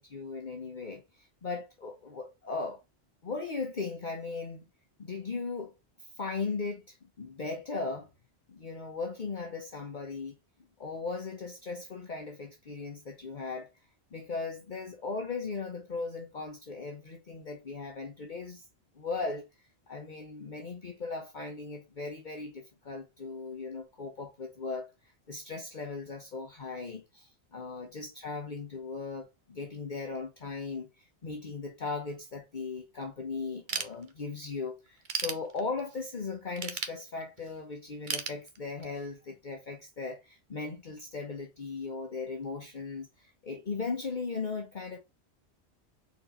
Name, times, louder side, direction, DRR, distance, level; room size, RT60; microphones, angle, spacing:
voice 1, 0.0-2.8 3.2-4.6 5.0-5.7 6.1-8.1 8.5-10.4 10.8-13.7 14.1-18.6 19.0-19.4 19.9-45.0, left 4 dB, 45° left, 1.0 m, -38 dB
Ratchet pawl / Tools, 33.7-34.5 34.9-36.0 36.6-37.5 38.1-39.1, right 5 dB, 50° right, 1.0 m, -35 dB
4.5 x 4.0 x 5.2 m
omnidirectional pair, 1.1 m